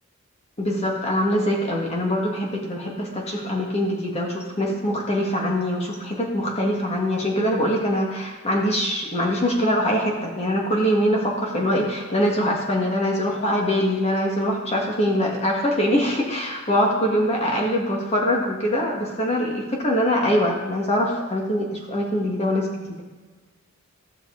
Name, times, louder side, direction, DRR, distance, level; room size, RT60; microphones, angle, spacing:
voice 1, 0.6-23.0, equal, 30° left, -1 dB, 1.8 m, -23 dB
15.0 x 6.4 x 3.9 m, 1.3 s
head